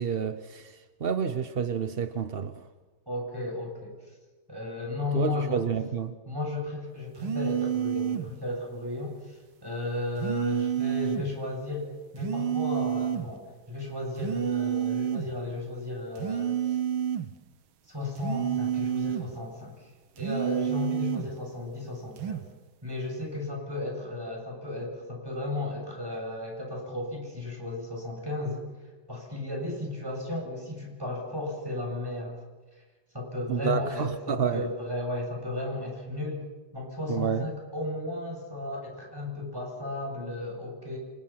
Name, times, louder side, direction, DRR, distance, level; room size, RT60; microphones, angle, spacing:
voice 1, 0.0-2.7 5.1-6.2 33.5-34.7 37.1-37.5, right 7 dB, 55° right, 10 dB, 0.6 m, -29 dB
voice 2, 3.1-4.0 4.5-5.6 6.3-16.8 17.9-19.9 20.2-22.5 22.8-28.6 29.1-32.4 33.1-36.4 36.7-41.0, left 2 dB, 10° right, 0 dB, 7.5 m, -34 dB
sound 1, 7.2-8.3 10.2-11.3 12.2-13.3 14.2-15.3 16.2-17.3 18.2-19.3 20.2-21.3 22.2-22.5, right 9 dB, 85° right, 1.9 m, -29 dB
28.5 x 28.0 x 5.9 m, 1.3 s
omnidirectional pair, 2.2 m